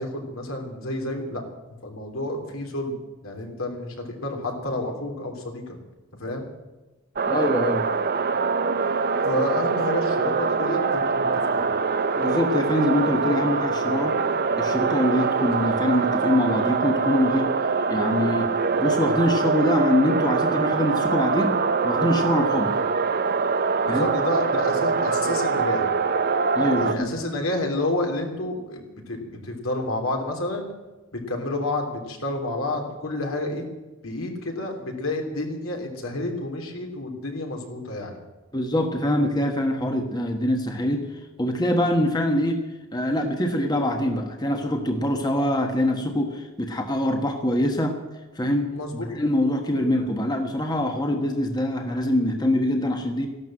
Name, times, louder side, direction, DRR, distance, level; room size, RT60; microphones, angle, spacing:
voice 1, 0.0-1.4 1.8-3.0 3.2-5.8 6.2-6.5 9.3-11.7 22.6-22.7 23.9-25.9 26.8-30.7 31.1-33.6 34.0-38.2 48.7-49.1, left 1 dB, 75° left, 2 dB, 3.4 m, -30 dB
sound 1, 7.2-26.9, right 4 dB, 50° right, 0.7 m, -24 dB
voice 2, 7.3-7.9 12.2-14.2 14.6-17.5 17.9-18.5 18.8-21.6 21.8-22.7 23.9-24.1 26.5-27.1 38.5-41.0 41.4-42.6 42.9-48.0 48.3-53.3, left 1 dB, 20° left, 4 dB, 1.3 m, -24 dB
14.5 x 12.0 x 7.8 m, 1.1 s
head